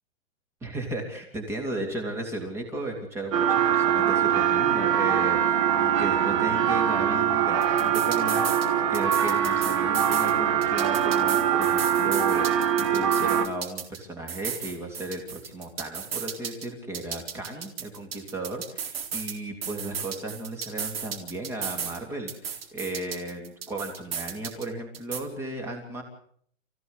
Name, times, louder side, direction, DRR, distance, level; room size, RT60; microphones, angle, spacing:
voice 1, 0.6-26.0, right 2 dB, 5° right, 3 dB, 3.1 m, -35 dB
sound 1, 3.3-13.5, right 9 dB, 25° right, 1.5 m, -23 dB
sound 2, 7.6-8.7 8.9-10.3 10.6-14.0 14.3-16.7 16.9-19.3 19.6-22.0 22.3-24.7 24.9-25.2, right 7 dB, 50° right, 4.1 m, -34 dB
29.0 x 16.0 x 8.2 m, 0.63 s
hypercardioid pair, 175°, 39 cm